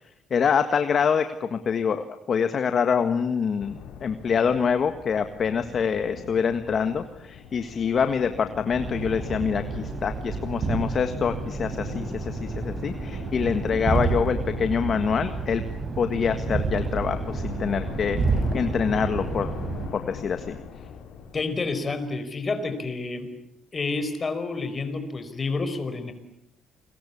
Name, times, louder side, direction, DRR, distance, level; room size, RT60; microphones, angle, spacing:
voice 1, 0.3-15.6 16.0-19.5 19.9-20.6, left 6 dB, 45° left, 8 dB, 1.7 m, -25 dB
sound 1, 3.6-22.0, left 6 dB, 80° left, 4.9 m, -41 dB
sound 2, 8.7-19.9, right 4 dB, 40° right, 5.6 m, -30 dB
voice 2, 21.3-23.3 23.7-26.1, left 3 dB, 30° left, 9 dB, 5.0 m, -29 dB
29.5 x 22.5 x 8.6 m, 0.78 s
cardioid pair, 110°, 0 cm